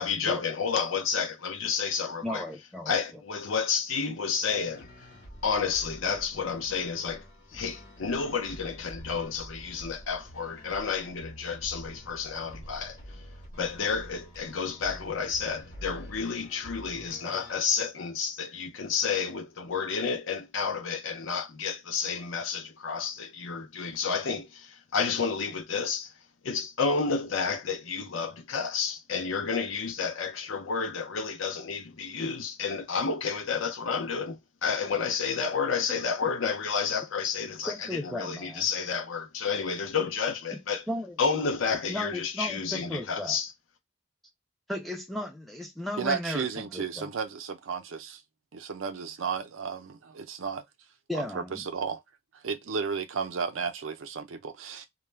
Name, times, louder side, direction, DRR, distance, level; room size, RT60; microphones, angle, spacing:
voice 1, 0.0-2.4 2.9-4.9 5.4-7.2 7.5-13.0 13.6-26.1 26.4-40.8 41.2-43.5, left 5 dB, 75° left, 0.6 m, -30 dB
voice 2, 2.2-2.9 35.9-36.0 37.7-38.7 40.9-41.2 41.9-43.4 44.7-47.1 51.1-51.7, left 1 dB, ahead, 0.3 m, -35 dB
sound 1, 4.5-17.5, equal, 45° left, 1.0 m, -47 dB
voice 3, 46.0-48.2 48.5-50.6 51.1-52.0 52.4-54.9, right 5 dB, 75° right, 0.5 m, -33 dB
2.2 x 2.1 x 3.2 m
head